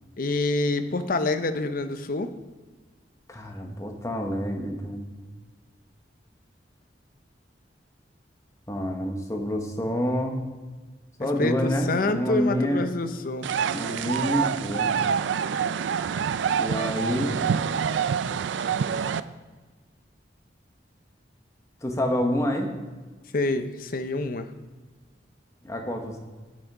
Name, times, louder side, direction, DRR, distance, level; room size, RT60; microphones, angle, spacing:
voice 1, 0.2-2.3 11.2-13.5 23.3-24.5, left 2 dB, 50° left, 9 dB, 0.6 m, -27 dB
voice 2, 3.3-5.1 8.7-10.4 11.2-12.9 13.7-14.9 16.6-17.4 21.8-22.7 25.6-26.2, equal, 15° left, 2 dB, 1.1 m, -27 dB
sound 1, 13.4-19.2, right 7 dB, 85° right, 0.4 m, -26 dB
9.3 x 7.2 x 4.9 m, 1.3 s
head